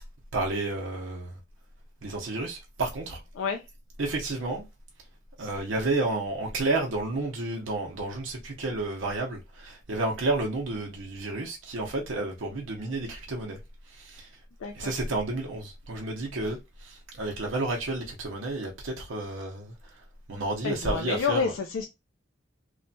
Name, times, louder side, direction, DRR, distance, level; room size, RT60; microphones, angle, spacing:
voice 1, 0.3-1.4 2.0-3.2 4.0-4.6 5.4-13.6 13.8-14.4 14.7-21.5, right 2 dB, 85° right, 0.6 m, -31 dB
voice 2, 14.6-14.9 20.6-21.8, left 5 dB, 85° left, 0.4 m, -29 dB
3.1 x 2.1 x 2.6 m
head